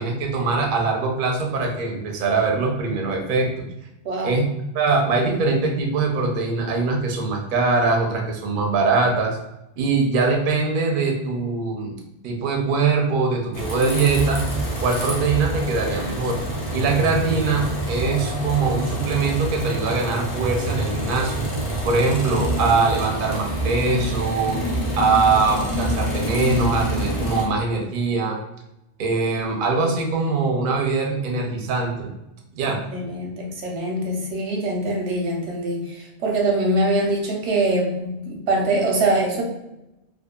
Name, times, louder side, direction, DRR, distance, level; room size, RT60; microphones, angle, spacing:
voice 1, 0.0-3.7 4.2-4.5 4.7-9.4 9.8-12.0 12.2-14.4 14.8-16.4 16.7-21.4 21.8-24.6 25.0-28.4 29.0-32.1 32.5-32.8, right 4 dB, 60° right, 1 dB, 0.6 m, -22 dB
voice 2, 4.0-4.4 32.6-39.4, right 2 dB, 85° right, 0 dB, 1.0 m, -23 dB
sound 1, 13.5-27.5, right 1 dB, 35° left, 0.4 m, -27 dB
2.6 x 2.3 x 2.2 m, 0.90 s
omnidirectional pair, 1.2 m